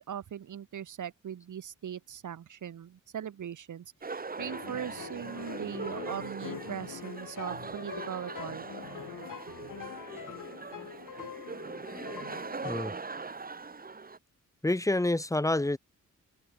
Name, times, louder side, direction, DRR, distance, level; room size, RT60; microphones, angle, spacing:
voice 1, 0.0-8.6, right 9 dB, 70° right, 1.9 m, -40 dB
sound 1, 4.0-14.2, right 4 dB, 25° right, 2.4 m, -41 dB
sound 2, 4.4-12.7, left 9 dB, 75° left, 3.9 m, -44 dB
voice 2, 14.6-15.8, left 2 dB, 10° left, 1.9 m, -27 dB
wide cardioid pair, 145°, 32 cm